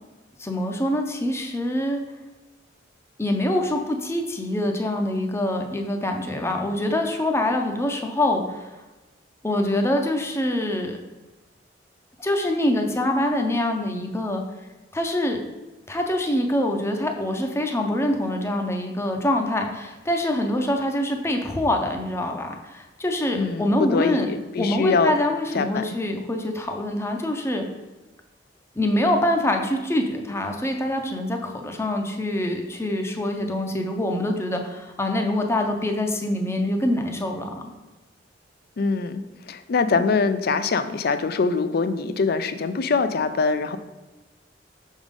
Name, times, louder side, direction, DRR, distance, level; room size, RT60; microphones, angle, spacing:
voice 1, 0.4-2.0 3.2-8.7 9.4-11.0 12.2-14.4 14.9-15.4 15.9-24.3 24.6-27.6 28.8-37.7, left 1 dB, 15° left, 3 dB, 0.6 m, -25 dB
voice 2, 23.3-25.1 25.5-25.9 38.8-43.8, left 4 dB, 55° left, 11 dB, 0.4 m, -23 dB
6.0 x 3.7 x 5.1 m, 1.2 s
head